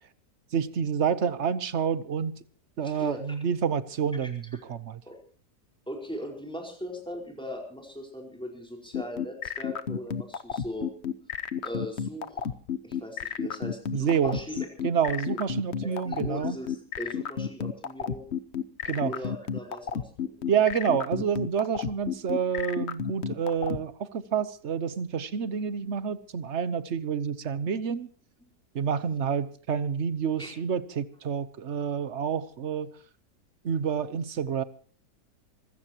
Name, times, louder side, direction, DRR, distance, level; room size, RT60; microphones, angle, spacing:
voice 1, 0.5-2.4 2.8-5.0 13.9-14.4 14.8-16.6 18.9-19.1 20.5-28.1 28.7-32.9 33.6-34.6, right 7 dB, 50° right, 1.1 m, -28 dB
voice 2, 2.8-3.2 4.2-4.6 5.1-5.2 5.9-10.9 11.6-12.5 12.8-14.7 15.8-18.3 19.0-20.3 25.8-26.0 28.4-28.5 30.4-30.5, equal, 5° left, 4.8 m, -39 dB
sound 1, 8.9-23.8, left 7 dB, 50° left, 1.0 m, -31 dB
25.5 x 16.0 x 3.0 m
omnidirectional pair, 1.8 m